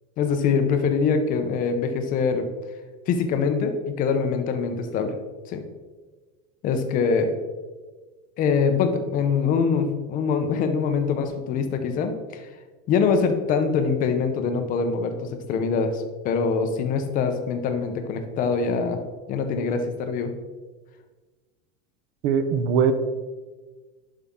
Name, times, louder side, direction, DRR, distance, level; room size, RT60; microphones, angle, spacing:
voice 1, 0.2-2.5 3.1-5.1 5.5-5.6 6.6-7.3 8.4-12.4 12.9-15.2 15.5-19.0 19.3-20.3, left 5 dB, 25° left, 7 dB, 0.7 m, -24 dB
voice 2, 22.2-22.9, right 7 dB, 40° right, 10 dB, 0.7 m, -21 dB
11.0 x 5.6 x 3.6 m, 1.3 s
supercardioid pair, 175°, 33 cm